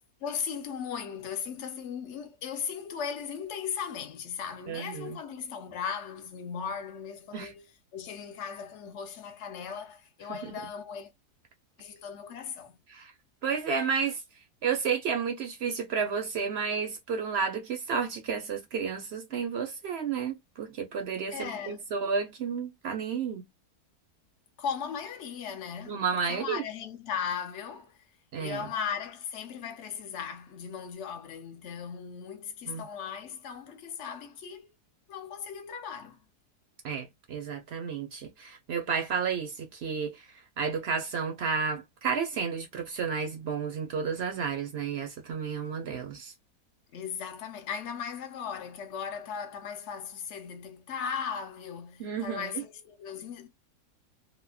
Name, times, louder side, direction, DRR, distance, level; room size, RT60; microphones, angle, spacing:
voice 1, 0.2-7.6 7.9-11.1 11.8-12.8 21.3-21.8 24.6-28.0 28.4-34.7 35.1-36.2 46.9-53.5, left 7 dB, 60° left, 0.8 m, -37 dB
voice 2, 4.7-5.2 7.3-7.5 10.4-10.5 12.9-13.1 13.4-14.2 14.6-23.4 25.9-26.6 28.3-28.7 32.7-32.9 36.8-40.3 40.6-46.3 52.0-52.6, right 6 dB, 60° right, 0.7 m, -31 dB
3.4 x 2.1 x 2.3 m
omnidirectional pair, 1.7 m